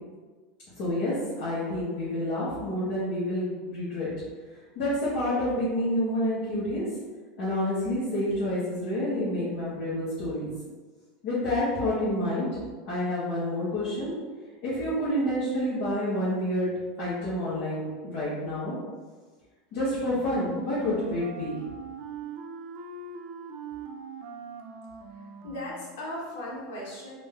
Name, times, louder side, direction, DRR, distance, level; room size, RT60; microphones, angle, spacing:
voice 1, 0.8-4.1 4.7-6.8 7.4-10.5 11.2-12.5 12.8-14.1 14.6-16.7 17.0-18.7 19.7-21.6, left 1 dB, 60° left, -11 dB, 1.4 m, -28 dB
Wind instrument woodwind instrument, 20.0-26.0, right 5 dB, 60° right, 0.6 m, -42 dB
voice 2, 25.0-27.1, left 1 dB, 80° left, -4 dB, 1.4 m, -38 dB
3.9 x 2.7 x 3.6 m, 1.4 s
supercardioid pair, 140°, 0 cm